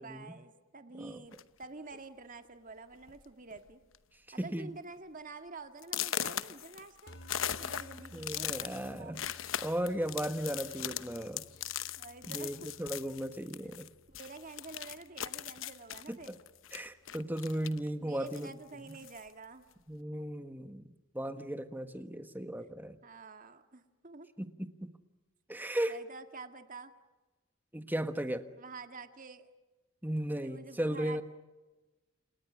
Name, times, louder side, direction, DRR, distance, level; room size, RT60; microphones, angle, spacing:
voice 1, 0.0-3.8 4.3-7.2 7.6-9.3 12.0-12.7 14.1-16.4 18.0-19.7 21.3-21.5 23.0-24.3 25.9-26.9 28.6-29.5 30.3-31.2, right 3 dB, 40° right, 7 dB, 2.0 m, -48 dB
sound 1, 1.3-1.6 2.4-2.5 2.9-3.2 3.5-4.0 4.4-4.5 5.0-5.1 5.8-13.9 14.1-17.9 18.2-19.3, left 10 dB, 75° left, 1.0 m, -39 dB
voice 2, 4.4-4.7 8.1-9.2 9.6-11.4 12.3-13.9 16.1-16.4 16.7-18.5 19.9-20.8 21.1-23.0 24.4-24.9 25.5-26.0 27.7-28.5 30.0-31.2, right 1 dB, 10° right, 9 dB, 1.5 m, -36 dB
sound 2, 7.1-17.5, equal, 55° left, 5.2 m, -58 dB
30.0 x 28.5 x 6.4 m, 1.2 s
head